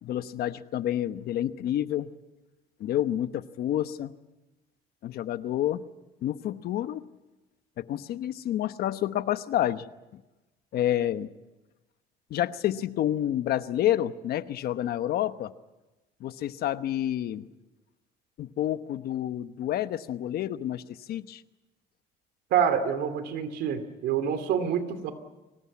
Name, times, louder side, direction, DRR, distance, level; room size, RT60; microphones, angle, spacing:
voice 1, 0.0-2.1 2.8-4.1 5.0-5.8 6.2-7.0 7.8-9.8 10.7-11.3 12.3-15.5 16.2-17.4 18.4-21.4, left 12 dB, 65° left, 12 dB, 1.0 m, -29 dB
voice 2, 22.5-25.1, right 8 dB, 80° right, 10 dB, 2.7 m, -27 dB
24.0 x 19.0 x 8.5 m, 1.1 s
cardioid pair, 110°, 17 cm